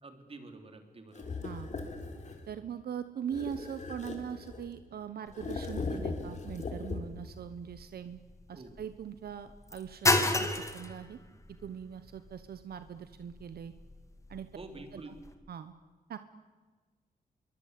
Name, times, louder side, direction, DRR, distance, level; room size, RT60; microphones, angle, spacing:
voice 1, 0.0-1.3 8.5-8.7 14.5-15.1, right 3 dB, 35° right, 6 dB, 3.8 m, -48 dB
sound 1, 1.1-2.5 3.3-4.8 5.3-7.3, left 4 dB, 50° left, 3.9 m, -39 dB
voice 2, 2.5-8.2 8.5-10.1 10.4-11.2 11.6-13.7 14.3-14.5 14.9-15.1 15.5-15.7 16.1-16.2, right 8 dB, 80° right, 11 dB, 1.2 m, -41 dB
sound 2, 5.3-15.3, left 2 dB, 20° left, 2.4 m, -35 dB
26.5 x 23.0 x 8.5 m, 1.4 s
wide cardioid pair, 140°, 16 cm